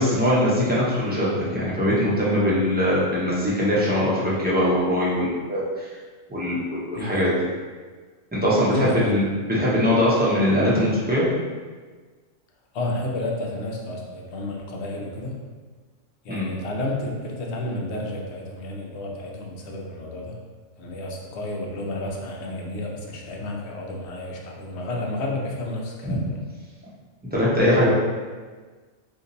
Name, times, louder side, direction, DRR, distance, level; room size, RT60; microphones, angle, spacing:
voice 1, 0.0-5.9 6.3-7.3 8.3-11.3 16.3-16.5 26.0-26.2 27.3-27.9, equal, 10° right, -8 dB, 0.5 m, -21 dB
voice 2, 6.9-7.2 8.7-9.1 12.7-15.4 16.2-20.4 20.8-26.3 27.7-27.8, left 2 dB, 65° left, -1 dB, 0.8 m, -31 dB
2.7 x 2.5 x 3.8 m, 1.4 s
omnidirectional pair, 1.4 m